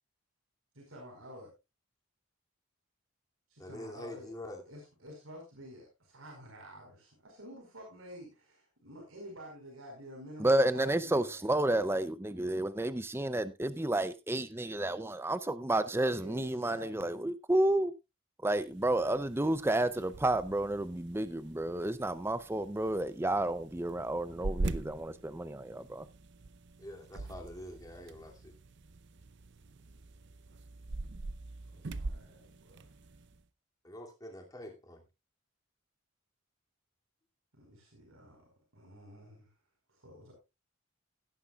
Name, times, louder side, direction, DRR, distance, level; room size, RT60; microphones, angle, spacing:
voice 1, 0.7-1.5 3.5-4.3 4.6-11.8 16.1-17.1 18.8-19.5 31.7-32.9 37.5-38.4 38.7-39.5 39.9-40.3, equal, 85° right, 4.8 m, -50 dB
voice 2, 3.6-4.6 26.8-28.5 33.8-35.0, left 1 dB, 20° left, 2.6 m, -45 dB
voice 3, 10.4-17.9 18.4-26.1, right 1 dB, 10° right, 0.5 m, -31 dB
sound 1, 18.6-33.4, right 2 dB, 55° right, 0.6 m, -43 dB
17.0 x 10.0 x 2.4 m
head